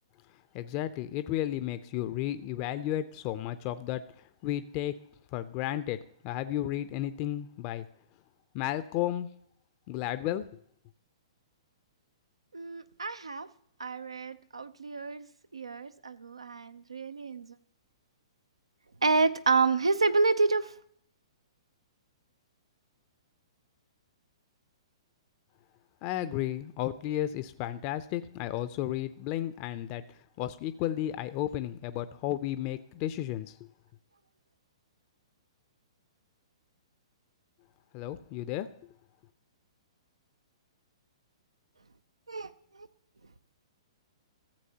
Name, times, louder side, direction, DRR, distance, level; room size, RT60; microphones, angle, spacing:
voice 1, 0.5-4.9 5.3-6.0 6.2-7.9 8.5-9.3 9.9-10.5 26.0-33.7 37.9-38.9, left 13 dB, 35° left, 12 dB, 0.5 m, -33 dB
voice 2, 12.5-13.5 13.8-17.5 19.0-20.7 42.3-42.5 42.7-42.9, right 3 dB, 90° right, 13 dB, 0.6 m, -28 dB
14.5 x 7.6 x 2.8 m, 0.67 s
hypercardioid pair, 120°, 3 cm